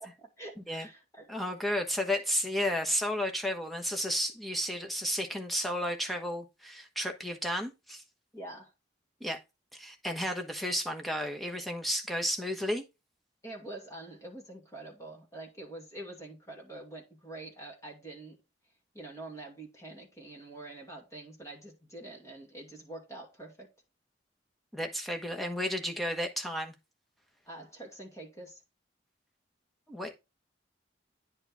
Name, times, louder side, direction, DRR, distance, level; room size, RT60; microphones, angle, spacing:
voice 1, 0.0-1.4 8.3-8.7 13.4-18.4 18.9-23.7 27.5-28.6, right 2 dB, 15° left, 2.6 m, -46 dB
voice 2, 1.3-8.0 9.2-9.4 9.7-12.8 24.7-26.7 29.9-30.2, equal, ahead, 1.1 m, -32 dB
9.7 x 4.5 x 3.5 m
head